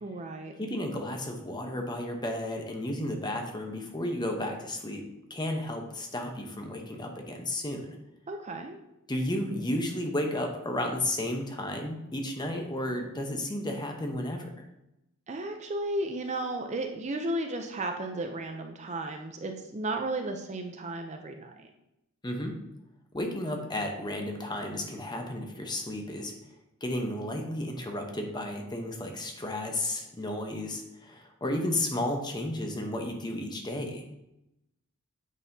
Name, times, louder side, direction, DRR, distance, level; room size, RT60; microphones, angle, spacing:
voice 1, 0.0-0.5 8.3-8.8 15.3-21.7, right 2 dB, 30° right, 4 dB, 0.5 m, -34 dB
voice 2, 0.6-5.0 5.3-8.0 9.1-14.5 22.2-22.5 23.1-26.3 26.8-34.0, left 1 dB, 20° left, 3 dB, 0.9 m, -33 dB
8.3 x 5.5 x 2.7 m, 0.88 s
head